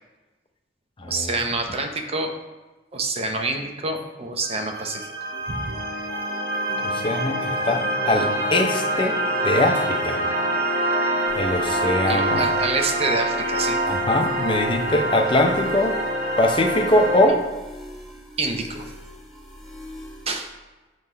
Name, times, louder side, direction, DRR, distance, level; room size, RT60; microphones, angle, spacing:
voice 1, 1.0-2.3 2.9-5.1 5.5-5.7 12.1-13.8 18.4-18.9 20.3-20.5, right 2 dB, 35° right, 4 dB, 0.6 m, -27 dB
sound 1, 4.4-17.3, right 1 dB, 55° right, 1.0 m, -25 dB
voice 2, 6.8-9.2 9.4-10.2 11.3-12.5 13.9-16.0 16.4-17.4, left 1 dB, 25° left, 4 dB, 0.6 m, -22 dB
sound 2, 11.3-20.4, equal, ahead, 0.8 m, -42 dB
5.6 x 3.0 x 5.4 m, 1.2 s
head